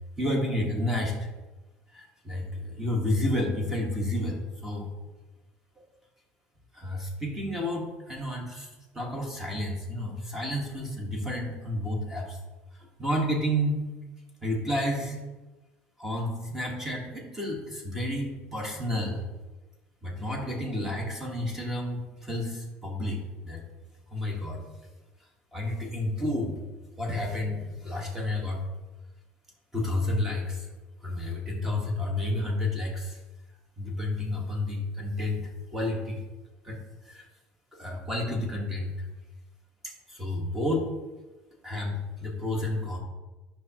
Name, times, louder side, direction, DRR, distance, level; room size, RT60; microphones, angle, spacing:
voice 1, 0.2-1.3 1.9-4.9 6.7-12.4 12.7-13.8 14.4-15.2 16.0-19.2 20.0-23.6 24.1-24.6 25.5-26.5 27.0-28.6 29.7-30.7 31.0-33.2 33.8-36.2 36.6-36.8 37.0-37.3 37.7-39.0 39.8-40.9 41.6-43.0, left 1 dB, 10° right, 0 dB, 1.3 m, -31 dB
9.4 x 5.7 x 2.8 m, 1.2 s
cardioid pair, 170°, 4 cm